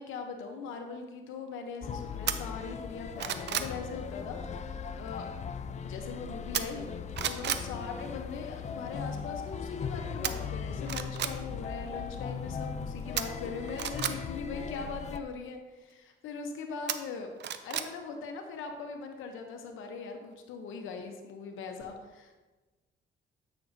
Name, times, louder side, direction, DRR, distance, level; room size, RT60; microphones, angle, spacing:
voice 1, 0.0-5.3 5.8-6.9 7.2-17.3 17.6-22.4, left 5 dB, 85° left, 4 dB, 0.8 m, -40 dB
sound 1, 1.8-15.2, left 6 dB, 35° left, 0.4 m, -38 dB
sound 2, 2.3-2.4 2.9-3.7 6.5-6.9 7.2-7.7 10.2-10.3 10.8-11.3 13.2-14.1 16.9-17.9 18.3-18.4, right 10 dB, 60° right, 0.5 m, -32 dB
8.4 x 6.1 x 2.6 m, 1.2 s
cardioid pair, 90°, 20 cm